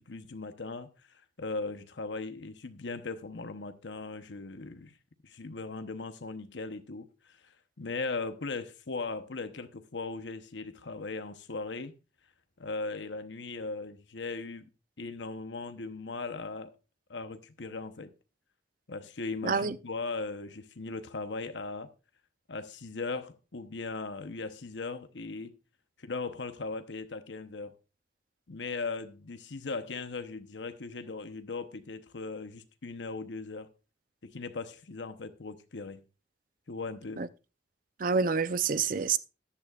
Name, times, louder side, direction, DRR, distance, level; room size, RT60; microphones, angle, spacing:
voice 1, 0.0-4.9 5.2-7.4 7.8-11.9 12.6-14.7 15.0-16.7 17.1-18.1 18.9-21.9 22.5-25.5 26.0-27.7 28.5-33.7 34.2-36.0 36.7-37.2, left 3 dB, 90° left, 0.9 m, -38 dB
voice 2, 19.4-19.8 37.2-37.3 38.0-39.2, right 5 dB, 50° right, 0.6 m, -27 dB
14.0 x 11.0 x 2.4 m
head